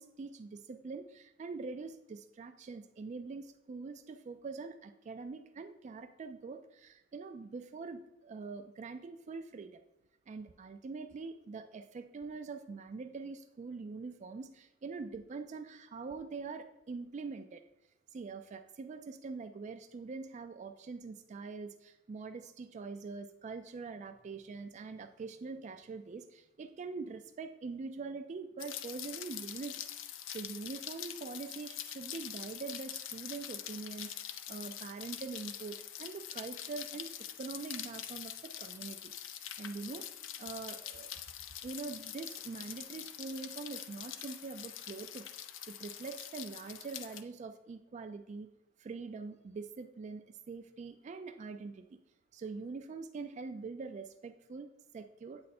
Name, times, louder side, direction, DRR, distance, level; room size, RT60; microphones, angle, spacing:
voice 1, 0.0-9.8 10.3-17.6 18.1-29.8 30.3-37.1 37.4-40.1 40.4-41.2 41.6-45.3 45.7-48.5 48.8-52.0 52.3-55.4, right 4 dB, 40° right, 8 dB, 0.3 m, -44 dB
Rain, 28.6-47.2, left 10 dB, 75° left, 0.4 m, -44 dB
8.7 x 3.2 x 4.2 m, 0.87 s
head